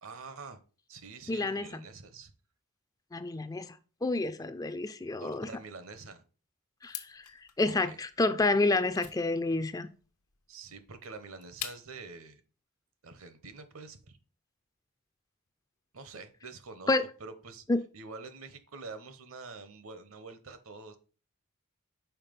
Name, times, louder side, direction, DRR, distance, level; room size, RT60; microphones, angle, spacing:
voice 1, 0.0-0.6 0.9-2.3 5.2-6.2 7.9-8.0 10.5-12.4 13.0-14.2 15.9-17.6 17.9-21.0, right 4 dB, 70° right, 0.9 m, -46 dB
voice 2, 1.3-1.8 3.1-5.5 6.8-7.2 7.6-9.9 16.9-17.1 17.7-17.8, left 2 dB, 15° left, 0.3 m, -29 dB
sound 1, 6.8-12.1, left 11 dB, 85° left, 0.8 m, -46 dB
5.7 x 4.7 x 5.2 m
head